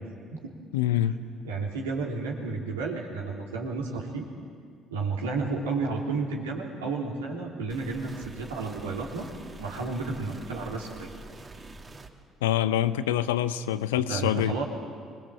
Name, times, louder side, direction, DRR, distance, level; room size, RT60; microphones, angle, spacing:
voice 1, 0.7-1.2 12.4-14.6, left 11 dB, 80° left, 13 dB, 0.8 m, -25 dB
voice 2, 1.4-4.3 4.9-9.3 9.6-11.1 14.1-14.6, right 4 dB, 85° right, -2 dB, 3.4 m, -32 dB
sound 1, 7.7-12.1, right 2 dB, 35° right, 2.6 m, -45 dB
25.0 x 21.5 x 7.5 m, 2.1 s
hypercardioid pair, 50°, 0 cm